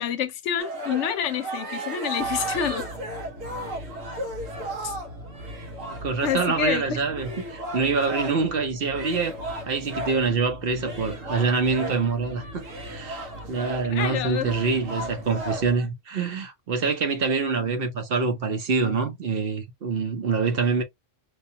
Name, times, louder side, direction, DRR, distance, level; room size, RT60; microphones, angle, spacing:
voice 1, 0.0-2.8 4.8-4.9 6.2-7.0 13.9-14.5, left 8 dB, 70° left, 0.9 m, -28 dB
sound 1, 0.6-8.5 8.9-10.3 10.8-15.9, right 1 dB, 85° right, 1.4 m, -35 dB
sound 2, 2.2-15.8, right 1 dB, 70° right, 1.7 m, -42 dB
voice 2, 5.9-9.4 9.7-20.8, right 4 dB, 55° right, 0.8 m, -25 dB
4.9 x 2.3 x 2.7 m
omnidirectional pair, 1.3 m